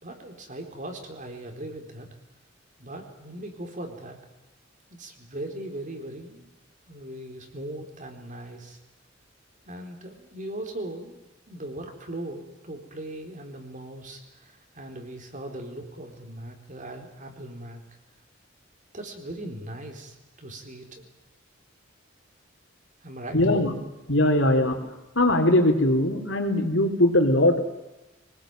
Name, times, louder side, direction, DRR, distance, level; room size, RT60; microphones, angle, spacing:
voice 1, 0.0-2.1 2.8-4.2 4.9-6.5 6.9-8.8 9.7-17.8 18.9-21.1 23.0-23.4, right 1 dB, 40° right, 4 dB, 4.4 m, -39 dB
voice 2, 23.3-23.8 24.1-24.8 25.2-27.6, left 1 dB, 75° left, 5 dB, 3.6 m, -20 dB
24.5 x 20.0 x 9.1 m, 1.0 s
head